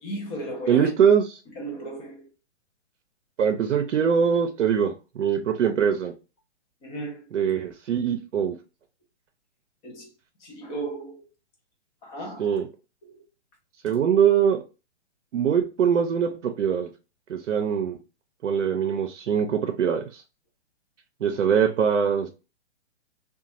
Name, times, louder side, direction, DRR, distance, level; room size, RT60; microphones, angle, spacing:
voice 1, 0.0-0.9 1.6-2.3 6.8-7.2 9.8-10.1 10.4-11.3 12.0-12.6 13.1-13.2 13.9-14.0, right 1 dB, 15° left, 0.4 m, -35 dB
voice 2, 0.7-1.3 3.4-6.1 7.3-8.6 12.4-12.7 13.8-14.6 15.3-16.9 17.3-18.0 18.4-20.2 21.2-22.3, right 7 dB, 85° right, 0.6 m, -22 dB
2.9 x 2.3 x 2.5 m
hypercardioid pair, 135°, 35 cm